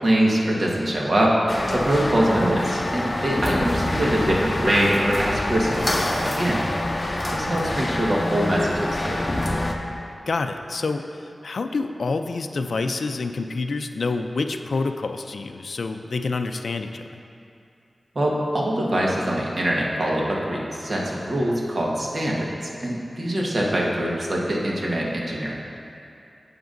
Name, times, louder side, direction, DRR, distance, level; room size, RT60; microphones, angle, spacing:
voice 1, 0.0-1.4 1.7-6.6 7.3-9.2 18.1-25.6, right 1 dB, 55° right, -3 dB, 1.3 m, -23 dB
sound 1, 1.5-9.7, left 1 dB, 30° left, 0.6 m, -26 dB
voice 2, 10.3-17.2, left 3 dB, 80° left, 7 dB, 0.4 m, -27 dB
11.0 x 8.0 x 2.6 m, 2.6 s
wide cardioid pair, 85°, 0 cm